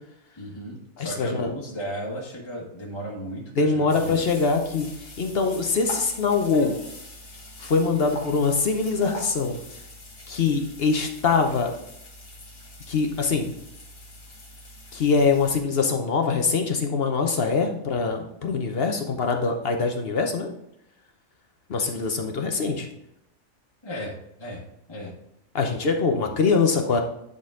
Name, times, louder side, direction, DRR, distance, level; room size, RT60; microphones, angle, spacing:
voice 1, 0.4-4.2 23.8-24.6 24.9-25.1, equal, 20° left, -4 dB, 1.3 m, -35 dB
voice 2, 1.0-1.5 3.6-4.9 5.2-6.7 7.6-9.6 10.3-11.7 12.9-13.5 14.9-20.5 21.7-22.9 25.5-27.0, left 4 dB, 50° left, 4 dB, 0.9 m, -23 dB
sound 1, 3.9-15.6, left 1 dB, 70° left, 1.8 m, -43 dB
9.7 x 4.0 x 3.7 m, 0.78 s
omnidirectional pair, 1.4 m